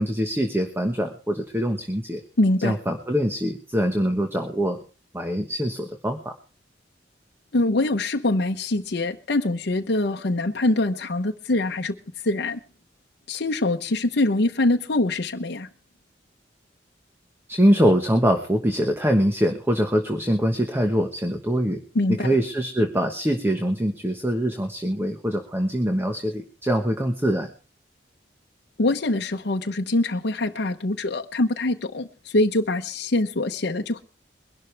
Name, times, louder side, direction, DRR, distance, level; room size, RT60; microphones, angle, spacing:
voice 1, 0.0-2.2 2.6-4.8 5.1-6.3 17.5-21.8 22.2-27.5, equal, 15° right, 1.3 m, -23 dB
voice 2, 2.4-2.8 7.5-11.9 12.2-12.6 13.3-15.7 21.9-22.3 28.8-34.0, left 2 dB, 65° left, 0.9 m, -24 dB
22.5 x 12.0 x 3.4 m
head